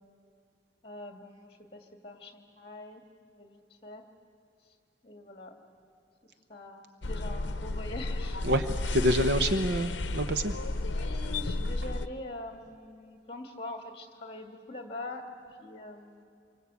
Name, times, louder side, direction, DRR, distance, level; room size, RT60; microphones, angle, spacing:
voice 1, 0.8-3.0 3.3-4.0 5.0-5.6 6.5-8.6 10.8-15.3 15.6-16.2, left 2 dB, 30° left, 4 dB, 2.1 m, -43 dB
sound 1, 7.0-12.1, left 2 dB, 70° left, 0.8 m, -32 dB
voice 2, 8.4-10.5, equal, 60° right, 9 dB, 0.8 m, -27 dB
27.0 x 24.0 x 8.3 m, 2.5 s
head